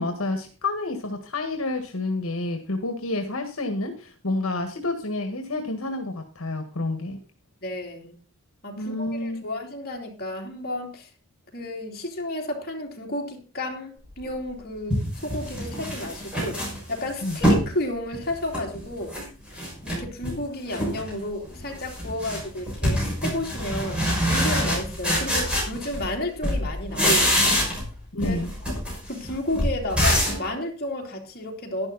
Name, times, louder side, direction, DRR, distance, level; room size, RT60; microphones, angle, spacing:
voice 1, 0.0-7.2 8.8-9.4 17.2-17.4 28.1-28.5, left 2 dB, 75° left, 6 dB, 1.6 m, -29 dB
voice 2, 7.6-8.2 8.6-11.1 11.5-16.6 16.9-19.2 19.8-24.0 24.3-27.6 28.2-28.7 29.1-31.9, left 1 dB, 45° left, 1 dB, 3.1 m, -32 dB
sound 1, 14.2-14.3 14.9-17.7 18.1-19.2 19.5-20.4 20.7-21.1 21.4-26.2 26.4-27.9 28.2-30.4, equal, 5° right, 5.9 m, -25 dB
11.5 x 10.5 x 4.1 m, 0.34 s
head